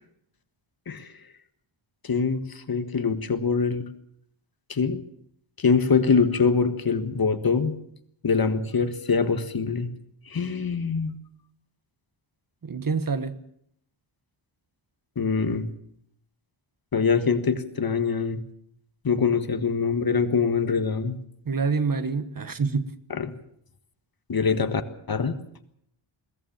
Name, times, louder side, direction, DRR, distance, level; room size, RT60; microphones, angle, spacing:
voice 1, 2.0-3.8 4.7-5.0 5.6-7.8 8.2-9.9 10.3-11.2 15.2-15.7 16.9-18.4 19.0-21.2 23.1-23.4 24.3-24.8 25.1-25.4, left 5 dB, 45° left, 1.6 m, -24 dB
voice 2, 12.6-13.4 21.5-22.9, right 4 dB, 40° right, 1.2 m, -26 dB
22.0 x 17.5 x 7.3 m
wide cardioid pair, 155°, 49 cm